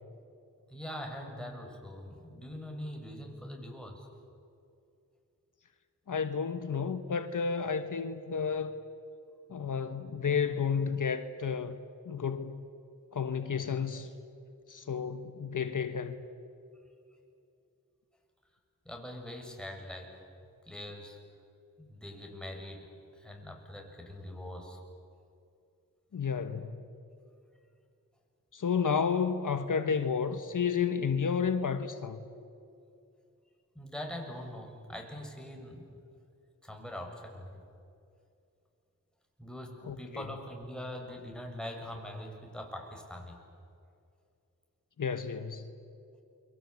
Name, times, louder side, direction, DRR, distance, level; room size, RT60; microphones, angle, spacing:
voice 1, 0.7-4.1 18.9-20.2 20.7-21.2 21.8-24.8 33.7-35.8 36.6-37.6 39.4-43.4, left 1 dB, ahead, 1 dB, 7.3 m, -43 dB
voice 2, 6.1-8.7 9.5-11.8 12.1-12.6 13.1-14.1 14.7-16.2 26.1-26.8 28.5-32.2 39.9-40.2 45.0-45.7, left 6 dB, 65° left, 9 dB, 1.3 m, -31 dB
29.0 x 23.5 x 8.4 m, 2.6 s
cardioid pair, 50°, 33 cm